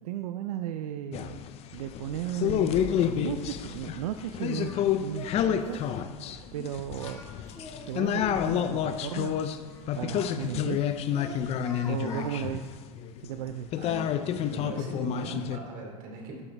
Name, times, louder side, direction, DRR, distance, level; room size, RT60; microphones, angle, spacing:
voice 1, 0.0-1.4 1.7-3.0 3.2-4.7 5.0-5.8 6.5-7.2 7.9-9.4 10.0-10.9 11.9-12.7 13.2-13.8, right 11 dB, 85° right, 8 dB, 0.4 m, -35 dB
sound 1, 1.1-15.6, left 9 dB, 35° left, 0.5 m, -30 dB
Singing, 4.5-4.8 5.1-5.5 5.8-6.1 6.8-8.4 9.1-10.8 11.1-12.3, left 2 dB, 15° left, 1.7 m, -44 dB
voice 2, 10.4-10.7 13.8-14.1 14.5-16.4, right 2 dB, 50° right, 0 dB, 2.7 m, -39 dB
12.0 x 6.2 x 3.3 m, 1.5 s
supercardioid pair, 120°, 19 cm